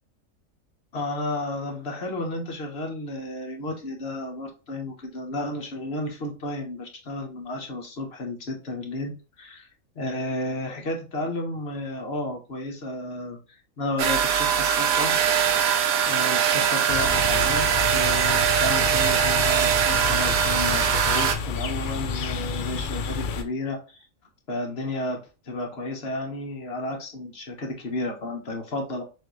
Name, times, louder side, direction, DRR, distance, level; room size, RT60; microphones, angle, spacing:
voice 1, 0.9-9.7 10.0-13.4 13.8-15.2 16.0-24.0 24.5-29.0, left 1 dB, 50° left, 2 dB, 1.2 m, -32 dB
sound 1, 14.0-21.4, right 8 dB, 85° right, 1.1 m, -22 dB
sound 2, 16.9-23.4, left 4 dB, 65° left, 0.5 m, -30 dB
6.2 x 2.6 x 3.0 m, 0.33 s
omnidirectional pair, 1.4 m